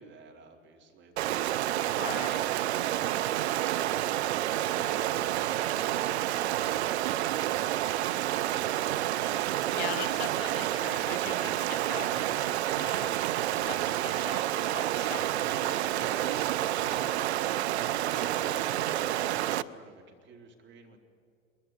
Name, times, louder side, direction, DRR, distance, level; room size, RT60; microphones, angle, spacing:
voice 1, 0.0-8.7 17.8-21.0, right 4 dB, 30° right, 2 dB, 4.1 m, -49 dB
Stream, 1.2-19.6, right 13 dB, 55° right, 0.8 m, -29 dB
voice 2, 2.0-2.4 9.7-13.2 13.6-17.3, left 10 dB, 50° left, 12 dB, 1.5 m, -42 dB
22.5 x 21.5 x 9.9 m, 2.4 s
figure-of-eight pair, 90°, 39 cm